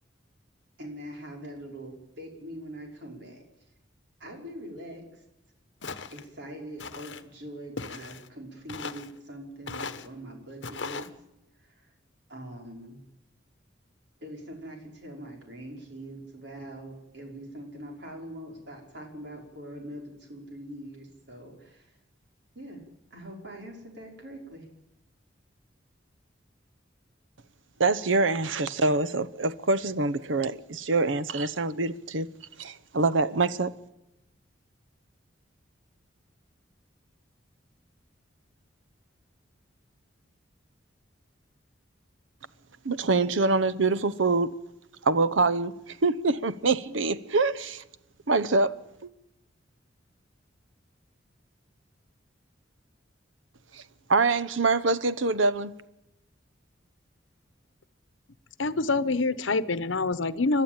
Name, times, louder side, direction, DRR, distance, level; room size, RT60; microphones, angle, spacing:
voice 1, 0.8-3.4 4.2-5.2 6.1-11.1 11.6-11.9 12.3-13.0 14.2-22.0 22.6-22.8 23.1-24.7, right 1 dB, 60° right, 5.3 m, -43 dB
Walk footsteps, 5.8-6.3 6.8-7.2 7.8-8.3 8.7-9.1 9.7-10.1 10.6-11.1, left 4 dB, 65° left, 1.1 m, -38 dB
voice 2, 27.8-32.3 32.6-33.7 42.8-44.5 45.0-47.8 48.3-49.1 53.7-53.8 54.1-55.7, right 3 dB, 85° right, 0.9 m, -25 dB
voice 3, 58.6-60.6, left 3 dB, 85° left, 0.9 m, -26 dB
30.0 x 12.0 x 9.1 m
head